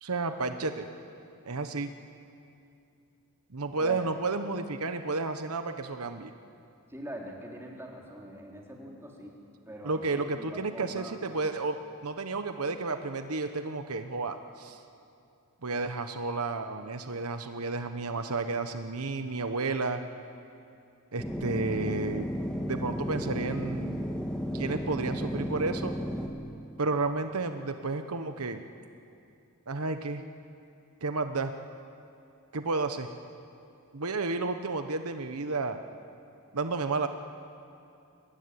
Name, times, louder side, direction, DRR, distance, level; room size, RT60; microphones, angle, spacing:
voice 1, 0.0-0.9 1.5-1.9 3.5-6.3 9.8-14.8 15.6-20.0 21.1-22.3 22.7-24.0 24.5-25.9 26.8-28.6 29.7-30.2 31.0-31.5 32.5-33.1 33.9-35.8 36.5-37.1, right 3 dB, 85° right, 8 dB, 1.2 m, -32 dB
voice 2, 6.9-9.4 9.6-11.3, right 1 dB, 10° right, -2 dB, 3.7 m, -43 dB
sound 1, 21.2-26.3, equal, 5° left, 1.7 m, -33 dB
23.0 x 20.0 x 9.9 m, 2.6 s
head